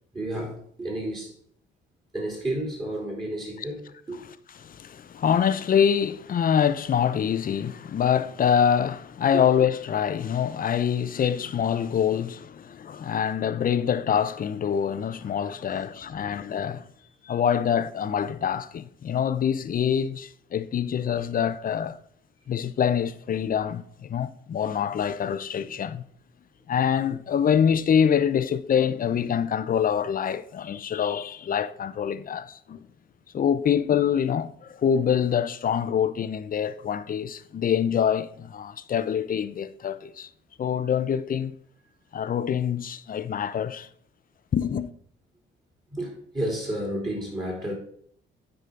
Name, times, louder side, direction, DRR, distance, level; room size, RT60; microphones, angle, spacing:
voice 1, 0.1-1.3 2.1-4.2 9.3-9.4 15.7-15.9 16.1-16.4 17.0-17.1 45.9-47.7, right 1 dB, 20° right, 3.3 m, -31 dB
voice 2, 4.2-16.9 17.2-22.0 22.5-26.0 26.7-32.8 33.3-40.3 40.6-41.5 42.1-43.9 44.5-44.9, left 8 dB, 45° left, 0.6 m, -25 dB
9.4 x 5.0 x 3.8 m
cardioid pair, 90°, 20 cm